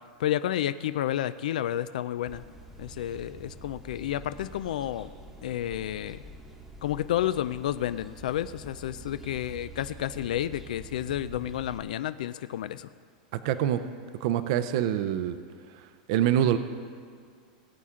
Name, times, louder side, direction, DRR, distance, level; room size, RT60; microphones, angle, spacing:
voice 1, 0.2-2.4 2.8-5.1 5.4-6.2 6.8-12.9, left 12 dB, 85° left, 13 dB, 0.3 m, -31 dB
sound 1, 2.3-11.8, right 2 dB, 5° right, 1.0 m, -46 dB
voice 2, 13.3-13.8 14.2-15.4 16.1-16.6, right 11 dB, 50° right, 10 dB, 0.5 m, -25 dB
19.0 x 8.5 x 3.7 m, 2.1 s
supercardioid pair, 165°, 4 cm